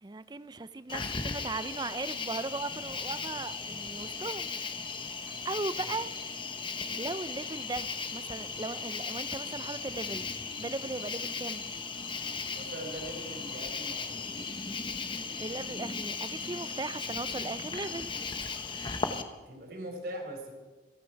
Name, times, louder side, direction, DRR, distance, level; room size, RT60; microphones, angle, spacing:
voice 1, 0.0-4.5 5.2-6.1 7.0-10.3 10.6-11.6 15.4-18.1, right 3 dB, 25° right, 14 dB, 0.5 m, -38 dB
Cricket, 0.9-19.2, left 4 dB, 30° left, 1.0 m, -37 dB
voice 2, 12.5-14.3 19.5-20.5, right 1 dB, 60° right, 2 dB, 4.4 m, -41 dB
28.0 x 9.7 x 4.6 m, 1.3 s
head